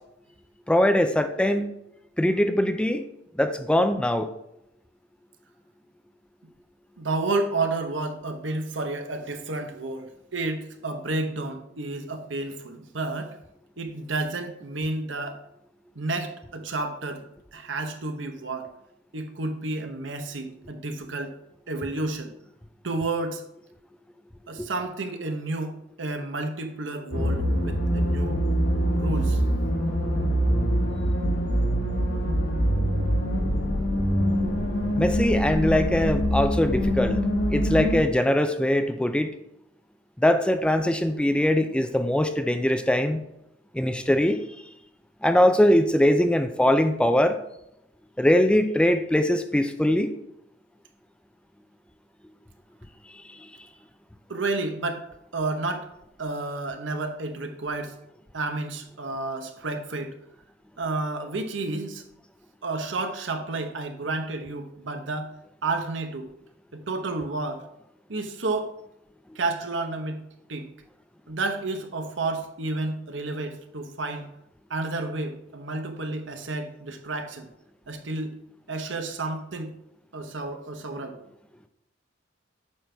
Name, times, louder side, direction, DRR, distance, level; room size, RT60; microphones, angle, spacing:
voice 1, 0.7-1.7 2.2-3.0 3.4-4.3 24.6-24.7 35.0-37.2 37.5-39.3 40.2-43.2 43.7-44.4 45.2-47.4 48.2-50.2, left 1 dB, 5° left, 8 dB, 0.4 m, -22 dB
voice 2, 7.0-13.4 13.8-15.4 15.9-18.7 19.1-21.3 21.7-22.3 22.8-23.4 24.5-28.4 28.9-29.4 54.3-55.0 55.3-55.9 56.2-57.9 58.3-60.1 60.8-62.0 62.6-65.3 65.6-66.3 66.7-67.6 68.1-68.7 69.3-70.2 70.5-70.7 71.3-74.2 74.7-77.5 77.9-78.3 78.7-79.7 80.1-81.2, right 2 dB, 75° right, 6 dB, 1.0 m, -31 dB
sound 1, 27.1-38.0, equal, 80° left, 1.8 m, -24 dB
8.8 x 6.0 x 3.4 m, 0.80 s
head